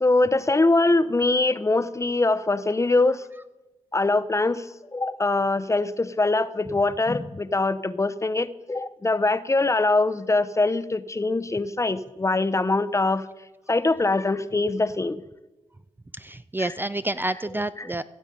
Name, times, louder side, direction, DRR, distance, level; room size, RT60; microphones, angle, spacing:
voice 1, 0.0-3.2 3.9-4.7 4.9-13.2 13.7-15.2, left 2 dB, 25° left, 14 dB, 0.7 m, -23 dB
voice 2, 16.1-18.0, right 1 dB, 15° right, 13 dB, 0.4 m, -29 dB
16.0 x 7.2 x 5.3 m, 1.1 s
cardioid pair, 55°, 12 cm